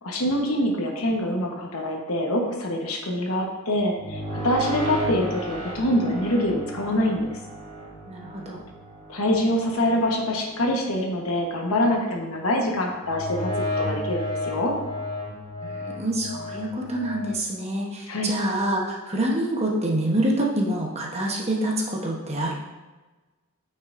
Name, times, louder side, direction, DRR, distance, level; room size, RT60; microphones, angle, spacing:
voice 1, 0.0-7.3 9.1-13.5 13.8-14.7 18.1-18.3, left 1 dB, 70° left, 1 dB, 1.1 m, -25 dB
sound 1, 3.8-10.9 12.9-17.3, equal, 25° left, 1.9 m, -33 dB
voice 2, 8.1-8.6 15.6-22.5, right 1 dB, 30° right, -2 dB, 1.0 m, -26 dB
8.9 x 5.6 x 2.6 m, 1.2 s
head